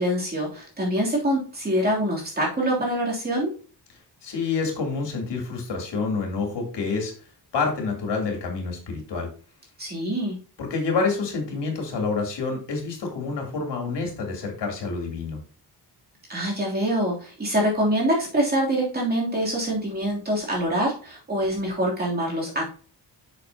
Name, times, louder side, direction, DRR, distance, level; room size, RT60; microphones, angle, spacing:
voice 1, 0.0-3.5 9.8-10.4 16.3-22.6, right 1 dB, 20° right, -3 dB, 3.1 m, -25 dB
voice 2, 4.2-7.1 7.5-9.3 10.6-15.4, left 4 dB, 80° left, 2 dB, 3.2 m, -28 dB
8.9 x 6.8 x 2.9 m, 0.39 s
wide cardioid pair, 175°, 42 cm